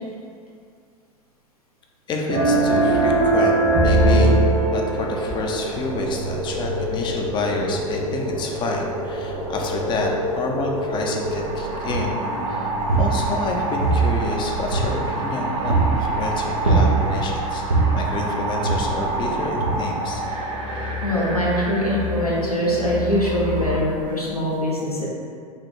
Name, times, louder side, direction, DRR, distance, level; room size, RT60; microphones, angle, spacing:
voice 1, 2.1-3.5 3.8-4.4 4.7-12.2 12.5-12.7 13.0-17.6 17.9-20.2, left 3 dB, 25° left, 1 dB, 0.5 m, -28 dB
sound 1, 2.3-5.6, right 2 dB, 50° right, 1.2 m, -18 dB
sound 2, 4.9-23.8, right 1 dB, 30° right, 0.6 m, -28 dB
sound 3, 11.9-12.3 12.7-13.5 13.8-15.3 15.7-16.1 16.7-17.3 17.7-18.1 18.6-19.2 19.6-19.7, right 4 dB, 85° right, 0.7 m, -21 dB
voice 2, 21.0-25.1, equal, 90° left, -5 dB, 0.8 m, -23 dB
3.3 x 2.2 x 4.3 m, 2.2 s
figure-of-eight pair, 85°, 18 cm